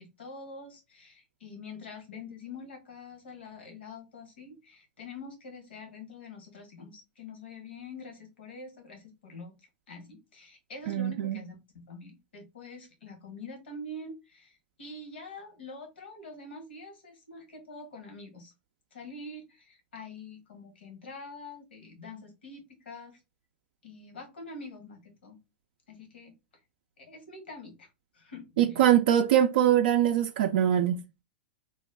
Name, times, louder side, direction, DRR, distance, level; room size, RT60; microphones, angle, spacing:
voice 1, 0.0-9.5 9.9-18.5 18.9-23.2 23.8-25.4 25.9-26.3 27.0-27.9 28.1-28.8, left 3 dB, 85° left, 1.3 m, -45 dB
voice 2, 10.9-11.4 28.6-31.0, right 10 dB, 65° right, 0.3 m, -23 dB
3.0 x 2.2 x 3.3 m
hypercardioid pair, 115°, 6 cm